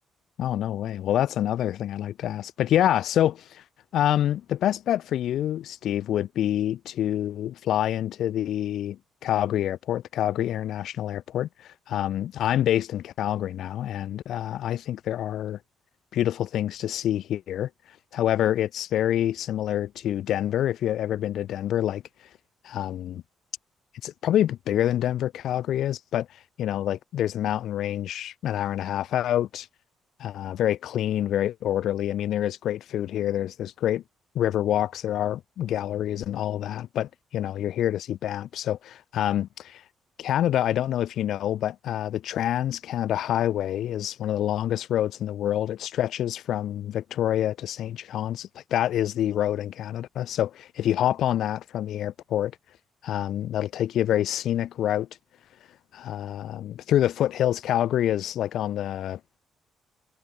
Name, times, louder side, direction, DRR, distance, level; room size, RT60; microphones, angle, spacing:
voice 1, 0.4-3.6 3.9-15.6 16.1-17.7 18.1-22.0 22.6-23.2 24.0-29.7 30.2-34.0 34.3-39.8 40.2-52.5 53.0-55.1 55.9-59.2, left 11 dB, 75° left, 0.5 m, -27 dB
cardioid pair, 90°, 0 cm